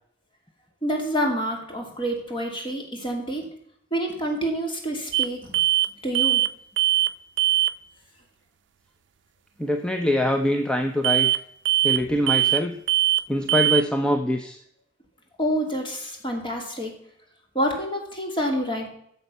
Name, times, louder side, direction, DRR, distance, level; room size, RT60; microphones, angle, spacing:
voice 1, 0.8-3.5 3.9-5.6 6.0-6.4 15.4-16.9 17.5-18.9, equal, 25° left, 1 dB, 2.4 m, -27 dB
sound 1, 5.1-5.3 5.5-5.9 6.1-6.5 6.8-7.1 7.4-7.7 11.0-11.4 11.7-12.0 12.3-12.6 12.9-13.2 13.5-13.8, right 13 dB, 70° right, 0.5 m, -21 dB
voice 2, 9.6-11.3 11.8-12.8 13.3-14.6, left 1 dB, 5° left, 5 dB, 0.6 m, -24 dB
9.6 x 7.0 x 5.4 m, 0.70 s
head